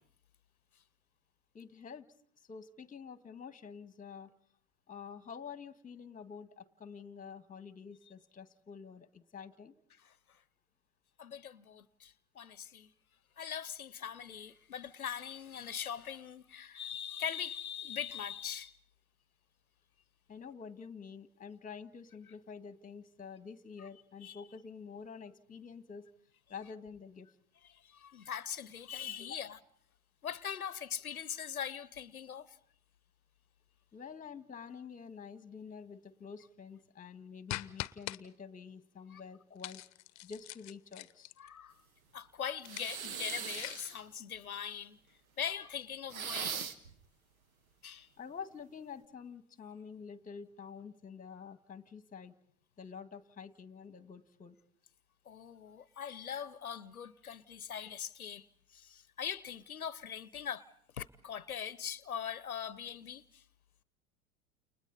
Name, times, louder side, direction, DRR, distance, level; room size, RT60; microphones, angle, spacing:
voice 1, 1.5-2.1 2.4-4.3 4.9-9.7 20.3-26.1 26.5-27.3 29.2-29.4 33.9-39.8 40.2-41.3 48.2-52.3 52.8-54.6, left 6 dB, 20° left, 1.7 m, -48 dB
voice 2, 10.0-10.4 11.2-12.9 13.4-18.8 24.2-24.4 27.6-29.6 30.2-32.6 39.1-39.2 41.4-41.8 42.1-45.0 45.4-46.7 47.8-48.1 55.3-63.4, left 8 dB, 90° left, 0.8 m, -41 dB
sound 1, 37.5-38.2 39.6-41.5 42.5-44.0, left 19 dB, 40° left, 0.9 m, -43 dB
sound 2, 42.6-44.0 46.1-46.9, right 7 dB, 75° right, 1.7 m, -40 dB
30.0 x 29.5 x 4.1 m
figure-of-eight pair, 80°, 42 cm